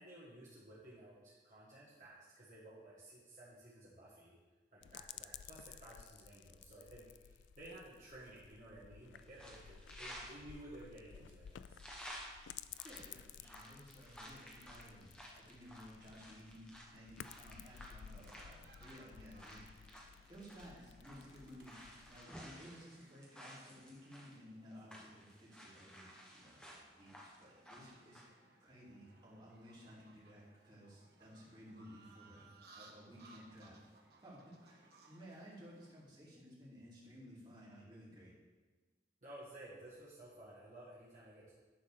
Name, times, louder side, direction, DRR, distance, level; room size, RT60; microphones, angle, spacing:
voice 1, 0.0-4.4 4.7-11.8 39.2-41.5, right 1 dB, 45° right, -8 dB, 1.7 m, -55 dB
sound 1, 4.8-22.2, left 9 dB, 90° left, 0.3 m, -56 dB
sound 2, 9.2-10.4 10.8-10.9 11.5-24.3 24.7-28.2, equal, 5° left, 1.3 m, -54 dB
voice 2, 12.8-19.8 20.3-21.8 22.1-26.6 27.0-28.2 28.6-33.8 34.2-38.3, equal, 25° right, -6 dB, 2.5 m, -56 dB
sound 3, 17.6-36.0, right 3 dB, 60° right, 1.2 m, -66 dB
10.5 x 3.9 x 6.6 m, 1.3 s
head